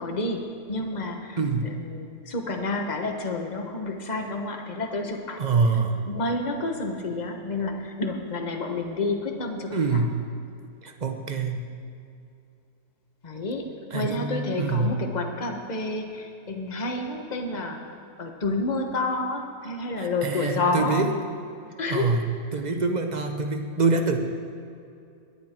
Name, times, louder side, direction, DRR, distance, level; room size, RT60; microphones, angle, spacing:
voice 1, 0.0-5.4 6.1-10.0 13.2-13.7 13.9-17.8 18.2-21.1 21.8-22.1, left 2 dB, 30° left, 3 dB, 1.2 m, -29 dB
voice 2, 1.4-1.7 5.4-6.1 9.7-10.2 10.8-11.7 13.9-15.0 20.0-21.1 21.9-22.2 22.5-24.2, right 4 dB, 30° right, 5 dB, 0.9 m, -25 dB
21.5 x 10.0 x 4.5 m, 2.5 s
omnidirectional pair, 1.8 m